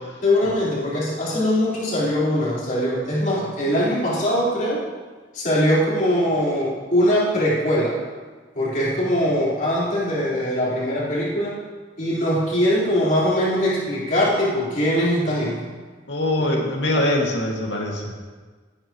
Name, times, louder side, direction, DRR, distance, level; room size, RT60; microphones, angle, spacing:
voice 1, 0.2-4.8 5.3-8.0 8.5-11.6 12.0-15.7 16.4-16.6, equal, 50° left, -8 dB, 4.4 m, -21 dB
voice 2, 16.1-18.1, left 1 dB, 75° left, -1 dB, 2.2 m, -23 dB
19.0 x 9.9 x 3.1 m, 1.4 s
head